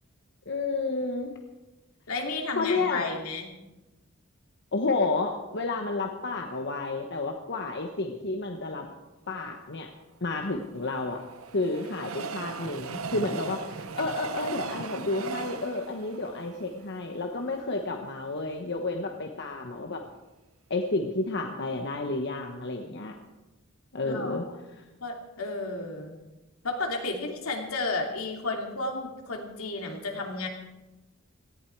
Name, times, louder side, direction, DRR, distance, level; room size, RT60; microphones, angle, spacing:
voice 1, 0.5-1.3 2.5-3.0 4.7-8.9 9.3-9.9 10.2-11.2 11.5-20.0 20.7-23.2 23.9-24.5 24.7-24.8, left 3 dB, 55° left, 3 dB, 1.2 m, -31 dB
voice 2, 2.1-3.5 24.0-24.6 25.0-26.2 26.6-30.5, left 3 dB, 80° left, 1 dB, 2.9 m, -33 dB
Train, 10.3-17.6 18.1-18.2 18.4-18.5, right 5 dB, 80° right, 0.9 m, -38 dB
18.0 x 14.5 x 4.7 m, 1.1 s
head